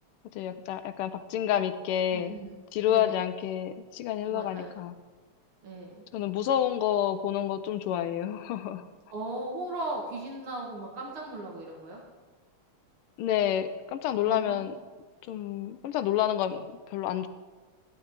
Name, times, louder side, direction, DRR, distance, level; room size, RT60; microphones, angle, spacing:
voice 1, 0.3-2.3 2.7-4.9 6.1-8.8 13.2-14.8 15.2-17.3, left 11 dB, 85° left, 10 dB, 1.5 m, -29 dB
voice 2, 2.1-2.5 2.9-3.1 4.3-4.7 5.6-6.0 9.1-12.0 14.3-14.7, right 2 dB, 75° right, -2 dB, 2.6 m, -37 dB
16.0 x 11.5 x 3.7 m, 1.3 s
omnidirectional pair, 2.4 m